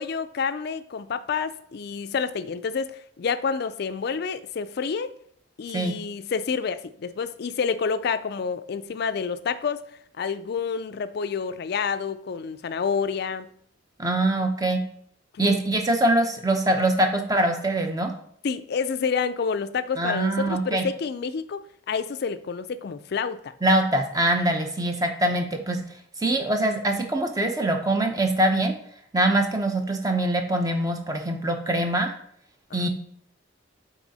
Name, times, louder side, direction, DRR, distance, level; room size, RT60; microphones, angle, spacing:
voice 1, 0.0-5.1 5.6-9.9 10.2-13.5 15.3-15.6 18.4-23.5 32.7-32.9, left 5 dB, 55° left, 12 dB, 0.4 m, -29 dB
voice 2, 14.0-14.8 15.4-18.1 20.0-20.8 23.6-25.8 26.2-28.7 29.1-32.1 32.7-32.9, right 1 dB, 20° right, 4 dB, 0.7 m, -23 dB
6.0 x 4.2 x 4.1 m, 0.65 s
head